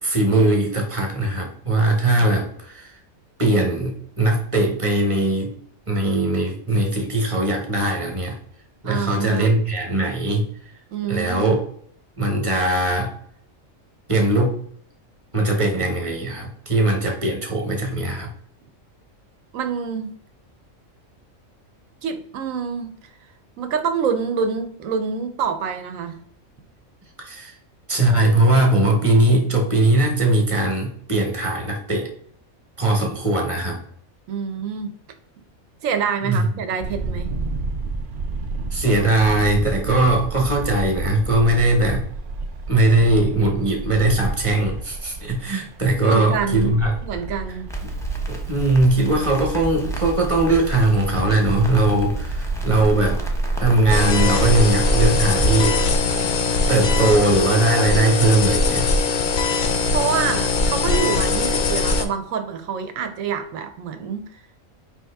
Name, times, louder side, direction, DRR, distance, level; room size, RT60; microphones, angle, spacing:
voice 1, 0.0-2.9 3.4-5.5 5.9-8.4 8.8-10.4 11.1-11.6 12.2-13.1 14.1-14.6 15.3-18.3 27.2-27.5 27.9-32.1 32.8-33.8 36.2-36.5 38.7-42.0 42.7-46.9 47.8-47.9 48.3-53.2 53.6-55.8 56.7-58.9, right 2 dB, 25° right, 1 dB, 1.0 m, -20 dB
voice 2, 8.8-9.5 10.9-11.6 19.5-20.1 22.0-22.9 23.6-26.2 34.3-34.9 35.8-37.3 46.1-46.7 47.0-47.7 59.9-64.3, right 6 dB, 80° right, 8 dB, 1.1 m, -26 dB
sound 1, 36.8-56.2, right 3 dB, 60° right, 0.5 m, -31 dB
Crackle, 47.7-55.5, right 2 dB, 5° left, 0.5 m, -27 dB
sound 2, 53.9-62.0, left 4 dB, 60° left, 0.5 m, -21 dB
5.0 x 2.8 x 3.4 m, 0.62 s
omnidirectional pair, 1.4 m